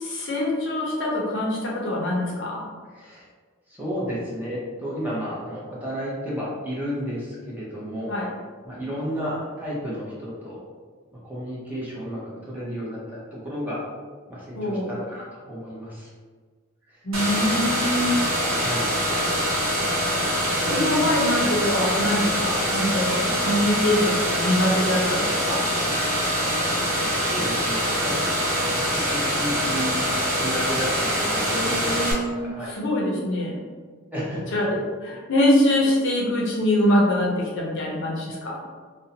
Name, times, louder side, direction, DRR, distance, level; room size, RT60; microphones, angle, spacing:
voice 1, 0.0-2.6 8.1-8.3 14.5-15.0 17.0-18.2 20.2-25.6 31.5-33.6 34.5-38.6, left 1 dB, 60° left, -3 dB, 0.6 m, -24 dB
voice 2, 3.8-8.1 8.6-10.6 11.2-13.8 14.3-16.1 18.6-18.9 20.6-21.1 27.3-28.3 28.7-28.8 29.1-30.1 30.4-31.9 32.4-32.8 34.1-34.5, equal, 10° right, -8 dB, 0.7 m, -32 dB
sound 1, 17.1-32.1, equal, 70° right, 0.7 m, -24 dB
2.6 x 2.1 x 2.7 m, 1.5 s
head